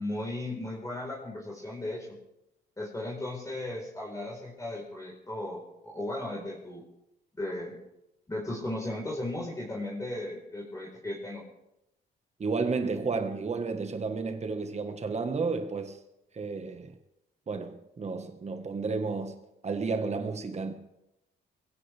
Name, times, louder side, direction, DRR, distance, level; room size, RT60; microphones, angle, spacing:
voice 1, 0.0-2.2 2.8-6.8 7.4-7.8 8.3-11.4, left 1 dB, 15° left, 4.6 m, -36 dB
voice 2, 12.4-16.0 16.3-16.9 17.5-19.3 19.6-20.7, right 4 dB, 35° right, 1.6 m, -32 dB
21.5 x 16.5 x 3.6 m
cardioid pair, 90°, 20 cm